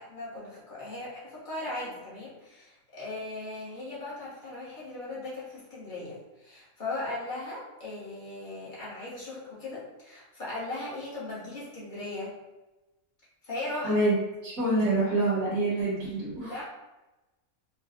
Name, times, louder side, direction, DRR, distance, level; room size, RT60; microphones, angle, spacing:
voice 1, 0.0-12.3 13.4-14.0 16.4-16.6, left 2 dB, 35° left, -8 dB, 1.2 m, -38 dB
voice 2, 13.8-14.2 14.4-16.5, right 2 dB, 70° right, -8 dB, 1.4 m, -26 dB
4.1 x 2.2 x 2.4 m, 1.0 s
omnidirectional pair, 1.5 m